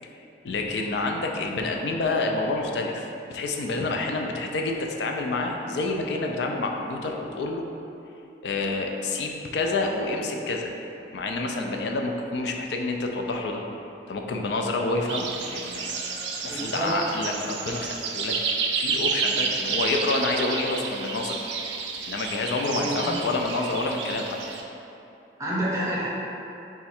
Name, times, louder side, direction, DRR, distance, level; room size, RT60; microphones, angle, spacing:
voice 1, 0.0-7.7 8.4-10.7 11.1-13.6 14.1-16.0 16.4-18.4 18.8-21.4 22.1-24.4, left 2 dB, 70° left, 2 dB, 0.4 m, -28 dB
sound 1, 15.1-24.6, right 5 dB, 80° right, 0.4 m, -30 dB
voice 2, 16.5-17.0 22.8-23.1 25.4-26.1, right 1 dB, 15° right, -7 dB, 0.6 m, -29 dB
4.1 x 2.4 x 4.2 m, 2.8 s
head